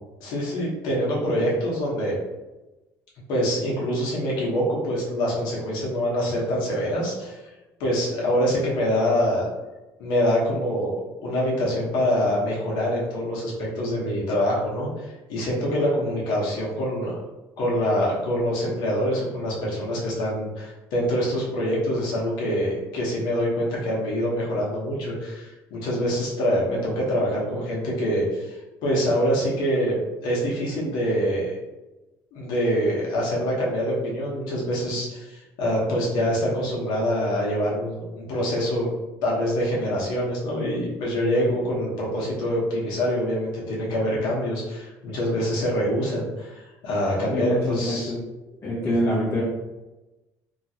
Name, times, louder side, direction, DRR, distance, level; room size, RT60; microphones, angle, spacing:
voice 1, 0.2-2.2 3.3-7.4 7.8-9.5 10.0-10.9 11.2-17.1 17.6-28.5 28.8-29.9 30.2-31.5 32.3-38.9 39.2-48.1 48.8-49.1, equal, 85° left, -4 dB, 1.0 m, -25 dB
voice 2, 47.3-48.2 48.6-49.4, left 1 dB, 35° left, -6 dB, 0.7 m, -25 dB
2.9 x 2.4 x 2.8 m, 1.1 s
cardioid pair, 140°, 7 cm